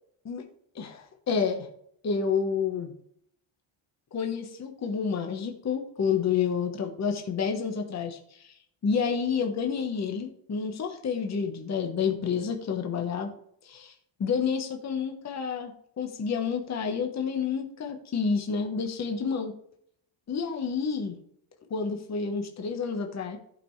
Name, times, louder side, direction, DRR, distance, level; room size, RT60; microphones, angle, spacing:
voice 1, 0.8-1.7 2.0-2.9 4.1-8.2 8.4-8.5 8.8-13.3 13.6-13.9 14.2-19.5 20.3-21.2 21.7-23.4, left 6 dB, 30° left, 3 dB, 1.2 m, -29 dB
15.0 x 5.7 x 3.2 m, 0.67 s
cardioid pair, 160°, 50 cm